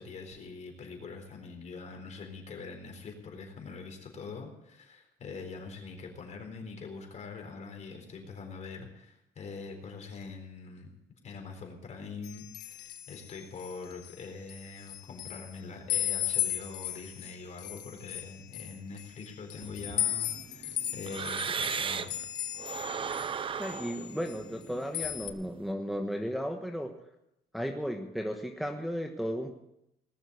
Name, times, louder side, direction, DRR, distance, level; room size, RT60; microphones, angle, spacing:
voice 1, 0.0-10.9 11.2-22.2, left 4 dB, 45° left, 3 dB, 4.1 m, -43 dB
sound 1, 12.2-14.1 14.5-15.5 15.9-23.3 23.6-24.6 24.9-25.3, left 12 dB, 85° left, 1.4 m, -36 dB
sound 2, 19.6-22.3 22.6-25.6, right 6 dB, 30° right, 0.6 m, -37 dB
voice 2, 23.6-26.9 27.5-29.5, equal, ahead, 2 dB, 1.3 m, -34 dB
19.0 x 7.1 x 8.3 m, 0.85 s
cardioid pair, 110°, 17 cm